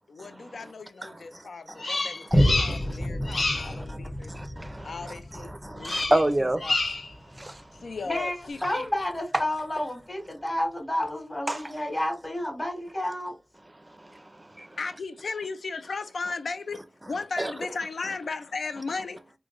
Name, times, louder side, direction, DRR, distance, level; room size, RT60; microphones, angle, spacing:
voice 1, 0.1-4.3 4.8-6.8 7.7-8.6 14.8-19.4, left 4 dB, 90° left, 0.4 m, -36 dB
voice 2, 1.0-1.9 2.3-2.9 3.2-4.0 4.3-6.6 7.3-7.6 9.3-9.4 11.5-11.7 13.9-14.8 17.4-17.5, right 1 dB, 20° right, 0.4 m, -31 dB
Bird vocalization bird call bird song, 1.8-3.0 3.2-3.8 5.8-6.3 6.6-7.1, left 3 dB, 70° left, 0.8 m, -28 dB
Boom, 2.3-9.2 9.8-9.9, equal, 15° left, 0.8 m, -30 dB
voice 3, 8.0-13.3, left 1 dB, 35° left, 1.6 m, -30 dB
4.4 x 2.2 x 2.4 m
wide cardioid pair, 65°, 0 cm